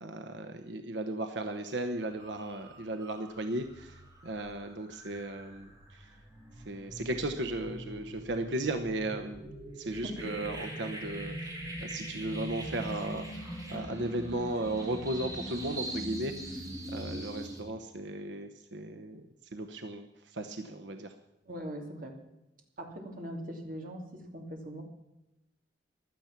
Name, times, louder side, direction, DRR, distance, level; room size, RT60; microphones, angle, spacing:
voice 1, 0.0-6.1 6.6-9.4 9.7-13.4 13.7-16.6 16.9-19.3 19.5-21.1, right 2 dB, 85° right, 6 dB, 1.0 m, -36 dB
sound 1, 1.6-1.8 2.1-17.6, right 1 dB, 20° right, 4.3 m, -42 dB
voice 2, 10.0-10.3 21.5-22.2 22.8-24.8, equal, 50° right, 2 dB, 2.8 m, -41 dB
16.0 x 12.0 x 5.9 m, 0.96 s
head